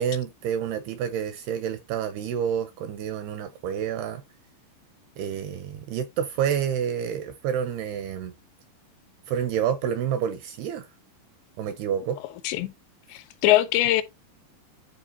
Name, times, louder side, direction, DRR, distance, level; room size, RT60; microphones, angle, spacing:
voice 1, 0.0-4.2 5.2-8.3 9.3-10.9 11.6-12.2, right 8 dB, 80° right, 2.4 m, -28 dB
voice 2, 13.1-14.0, left 15 dB, 80° left, 2.6 m, -22 dB
12.5 x 4.3 x 2.8 m
omnidirectional pair, 5.3 m